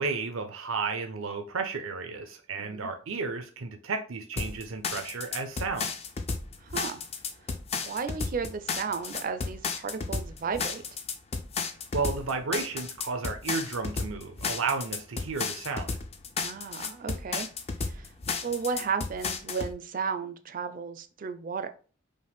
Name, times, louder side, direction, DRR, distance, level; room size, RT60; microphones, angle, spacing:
voice 1, 0.0-5.9 11.9-16.0, right 4 dB, 90° right, 0.6 m, -33 dB
voice 2, 2.6-2.9 6.6-7.0 7.8-10.8 16.4-17.5 17.8-18.1 18.4-21.7, right 5 dB, 45° right, 0.4 m, -34 dB
sound 1, 4.4-19.7, left 4 dB, 30° left, 0.4 m, -33 dB
5.1 x 2.1 x 3.4 m
head